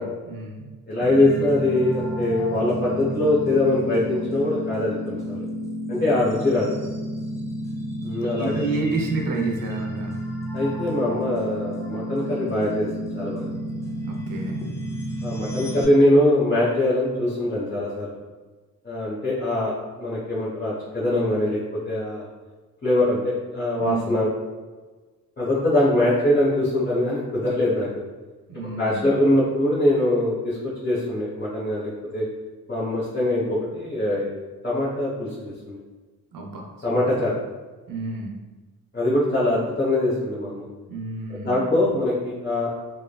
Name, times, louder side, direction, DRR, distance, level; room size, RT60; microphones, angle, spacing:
voice 1, 0.0-0.7 8.4-10.2 14.0-14.7 23.8-24.1 28.5-29.2 36.3-37.0 37.9-38.4 40.9-41.7, right 3 dB, 70° right, 1 dB, 0.6 m, -30 dB
voice 2, 0.9-5.4 5.9-6.7 8.0-8.6 10.5-12.9 13.1-13.5 15.2-18.1 18.8-22.2 22.8-24.3 25.4-27.9 28.6-32.2 32.7-34.3 34.6-35.8 36.8-37.4 38.9-40.6 41.4-42.7, left 1 dB, 30° left, -9 dB, 0.9 m, -22 dB
sound 1, 1.0-15.8, equal, 10° left, 0.4 m, -31 dB
3.2 x 2.1 x 2.2 m, 1.3 s
cardioid pair, 55°, 35 cm